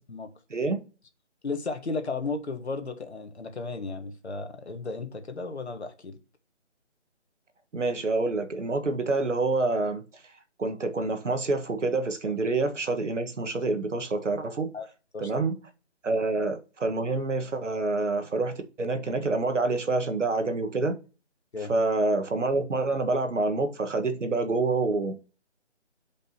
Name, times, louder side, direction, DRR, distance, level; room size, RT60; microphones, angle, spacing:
voice 1, 0.5-0.8 7.7-10.0 10.6-14.7 15.2-15.6 16.0-21.0 21.7-25.1, right 3 dB, 85° right, 1.6 m, -27 dB
voice 2, 1.4-6.2 14.7-14.9 15.1-15.3 16.1-16.2 21.5-21.7, left 3 dB, 65° left, 1.6 m, -34 dB
8.5 x 5.2 x 2.9 m
hypercardioid pair, 180°, 35 cm